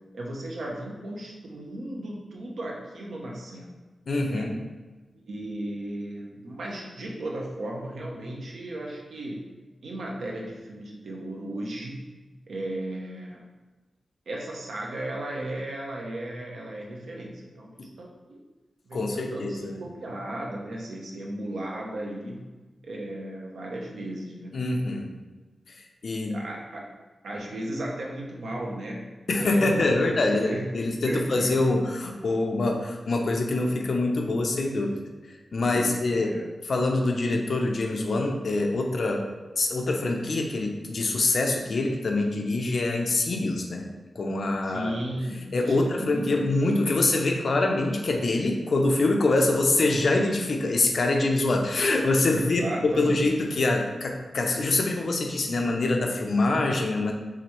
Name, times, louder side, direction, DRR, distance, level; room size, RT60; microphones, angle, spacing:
voice 1, 0.1-3.7 4.2-4.6 5.2-9.4 9.8-12.0 12.5-13.4 14.3-18.4 18.8-22.5 22.8-24.5 26.3-26.9 27.2-29.8 30.2-30.7 31.1-31.8 35.6-36.5 44.6-46.4 52.3-53.2, right 1 dB, 70° right, -1 dB, 0.8 m, -35 dB
voice 2, 4.1-4.5 18.9-19.8 24.5-25.1 26.0-26.4 29.3-35.0 35.5-36.3 36.6-39.3 39.6-43.9 44.2-44.9 45.5-57.1, left 2 dB, 55° left, 2 dB, 0.6 m, -25 dB
4.8 x 3.3 x 3.0 m, 1.2 s
wide cardioid pair, 160°, 0 cm